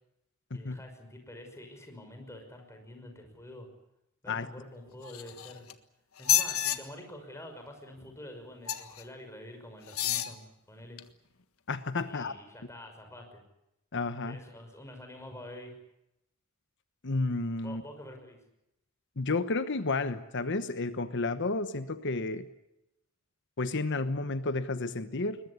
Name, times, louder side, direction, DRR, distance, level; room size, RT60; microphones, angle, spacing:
voice 1, 0.5-3.7 4.2-5.7 6.2-11.0 12.1-13.4 14.2-15.7 17.6-18.4, left 1 dB, 15° left, 5 dB, 5.9 m, -47 dB
sound 1, 5.0-5.7 6.2-6.8 8.7-9.0 9.9-10.3 11.0-11.1, left 10 dB, 75° left, 1.5 m, -29 dB
voice 2, 11.7-12.3 13.9-14.4 17.0-17.8 19.2-22.5 23.6-25.4, left 3 dB, 55° left, 11 dB, 1.1 m, -31 dB
22.0 x 21.0 x 9.6 m, 0.87 s
head